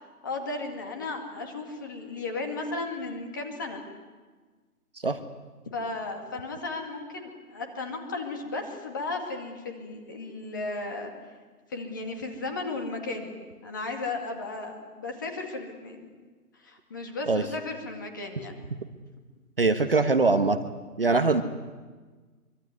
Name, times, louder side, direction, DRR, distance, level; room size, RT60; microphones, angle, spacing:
voice 1, 0.2-3.8 5.7-11.1 11.7-13.4 13.6-16.1 16.6-18.5 19.8-19.9 21.0-21.3, left 3 dB, 15° left, 3 dB, 2.1 m, -35 dB
voice 2, 19.6-20.6 21.0-21.4, right 3 dB, 35° right, 8 dB, 1.4 m, -22 dB
25.5 x 24.0 x 9.6 m, 1.4 s
hypercardioid pair, 175°, 46 cm